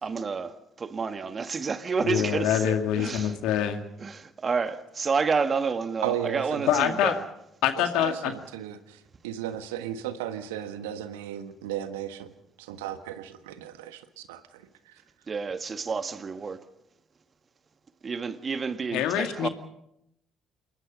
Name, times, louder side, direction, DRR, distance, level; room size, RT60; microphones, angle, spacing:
voice 1, 0.0-3.4 4.0-7.2 15.3-16.6 18.0-19.5, right 5 dB, 35° right, 1.8 m, -29 dB
voice 2, 2.0-3.8 6.7-7.2 7.6-8.3 18.9-19.5, left 10 dB, 65° left, 2.2 m, -25 dB
voice 3, 6.0-6.8 8.0-15.0, right 10 dB, 75° right, 1.5 m, -35 dB
27.0 x 21.5 x 5.5 m
figure-of-eight pair, 50°, 0 cm